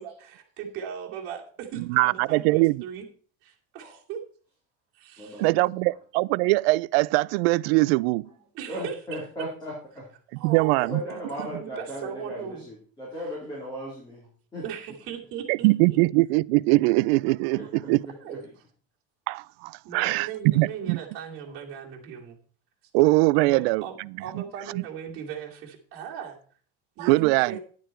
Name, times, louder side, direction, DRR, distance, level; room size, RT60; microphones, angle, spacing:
voice 1, 0.0-3.1 3.4-4.2 4.9-5.4 8.5-9.2 10.4-11.0 11.3-12.6 14.6-16.0 18.1-18.6 19.8-22.4 23.3-26.4 27.0-27.6, right 8 dB, 45° right, 2.6 m, -38 dB
voice 2, 1.9-2.8 5.4-8.3 10.4-11.0 15.5-18.0 19.3-20.3 20.5-21.0 22.9-23.8 27.0-27.6, right 22 dB, 85° right, 0.4 m, -22 dB
voice 3, 5.2-6.0 8.3-8.4 8.7-10.1 10.7-14.6 17.5-18.4, equal, 15° left, 3.8 m, -37 dB
10.5 x 8.9 x 4.4 m
cardioid pair, 160°, 30 cm